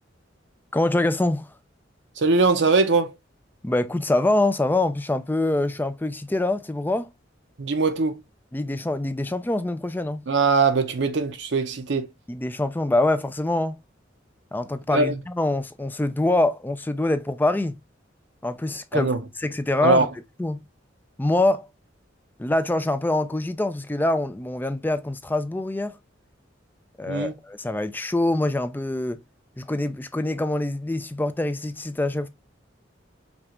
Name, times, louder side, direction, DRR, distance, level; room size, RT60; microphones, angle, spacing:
voice 1, 0.7-1.5 3.6-7.1 8.5-10.3 12.3-13.8 14.5-17.8 18.4-19.1 19.4-20.1 20.4-20.6 21.2-21.7 22.4-26.0 27.0-29.2 29.6-32.3, left 2 dB, 10° left, 0.4 m, -24 dB
voice 2, 2.2-3.1 7.6-8.2 10.3-12.1 14.9-15.2 18.9-19.2 19.8-20.1 27.1-27.3, right 4 dB, 65° right, 0.7 m, -21 dB
5.3 x 2.4 x 2.9 m
head